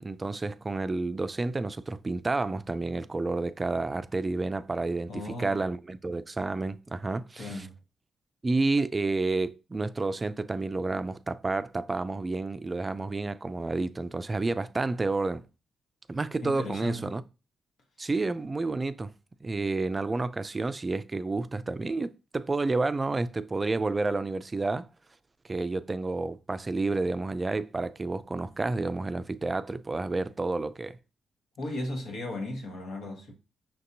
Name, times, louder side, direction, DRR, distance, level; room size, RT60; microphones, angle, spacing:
voice 1, 0.0-7.7 8.4-15.5 16.1-17.2 18.0-19.1 19.4-24.9 25.5-31.0, right 3 dB, 30° right, 0.3 m, -30 dB
voice 2, 5.1-5.6 7.4-7.7 16.4-17.1 31.6-33.3, left 1 dB, 75° left, 1.3 m, -36 dB
5.8 x 2.7 x 2.6 m
supercardioid pair, 55°, 0 cm